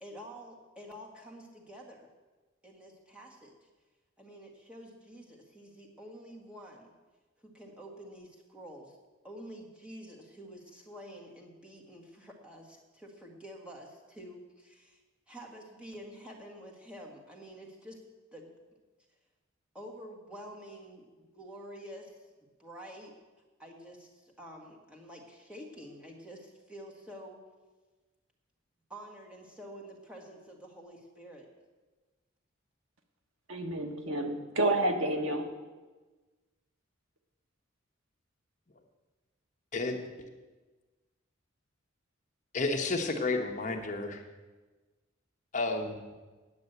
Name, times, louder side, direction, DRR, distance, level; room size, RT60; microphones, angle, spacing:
voice 1, 0.0-2.1 2.6-3.5 4.2-6.9 7.4-9.0 9.2-15.0 15.3-18.0 18.3-18.5 19.7-22.2 22.6-23.1 23.6-27.4 28.9-31.5, equal, 5° right, -1 dB, 1.7 m, -48 dB
voice 2, 33.5-35.5, right 1 dB, 80° right, 5 dB, 1.4 m, -29 dB
voice 3, 42.5-44.2 45.5-46.0, left 3 dB, 35° left, 3 dB, 1.1 m, -31 dB
9.5 x 8.4 x 8.0 m, 1.3 s
head